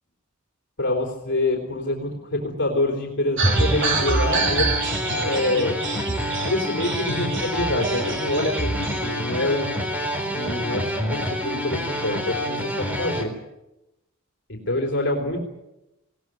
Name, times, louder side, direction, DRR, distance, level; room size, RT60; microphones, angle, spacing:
voice 1, 0.8-4.7 5.1-5.8 6.4-9.7 10.3-13.3 14.5-15.4, left 1 dB, 60° left, 1 dB, 3.6 m, -26 dB
sound 1, 3.4-13.2, equal, 5° right, 3.9 m, -27 dB
sound 2, 3.4-9.1, right 3 dB, 60° right, 3.4 m, -27 dB
20.0 x 19.0 x 9.2 m, 0.94 s
head